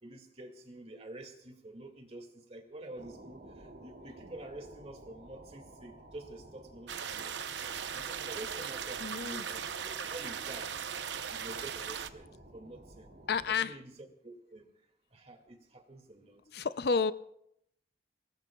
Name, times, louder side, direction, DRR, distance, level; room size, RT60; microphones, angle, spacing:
voice 1, 0.0-7.4 7.9-10.7 11.3-13.1 13.5-14.7 15.1-16.4 16.9-17.0, right 1 dB, 35° right, 2.2 m, -48 dB
sound 1, 3.0-13.6, right 1 dB, 70° right, 2.3 m, -54 dB
sound 2, 6.9-12.1, right 7 dB, 85° right, 0.7 m, -38 dB
voice 2, 9.0-9.5 13.3-13.8 16.5-17.1, left 5 dB, 65° left, 0.5 m, -30 dB
25.5 x 19.5 x 2.3 m
head